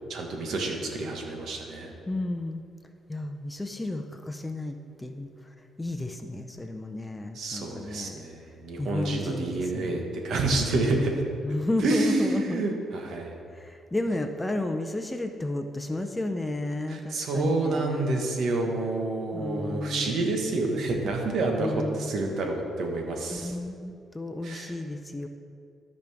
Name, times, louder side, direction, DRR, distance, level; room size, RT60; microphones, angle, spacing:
voice 1, 0.1-1.9 7.3-11.2 11.8-13.3 16.9-23.6 24.4-24.7, right 2 dB, 70° right, 2 dB, 1.4 m, -28 dB
voice 2, 2.1-2.6 3.1-5.3 5.8-8.2 8.8-10.0 11.4-12.6 13.5-18.2 19.3-20.4 21.6-22.2 23.3-25.3, left 2 dB, 15° left, 5 dB, 0.5 m, -32 dB
13.5 x 5.2 x 3.5 m, 2.4 s
cardioid pair, 90°, 0 cm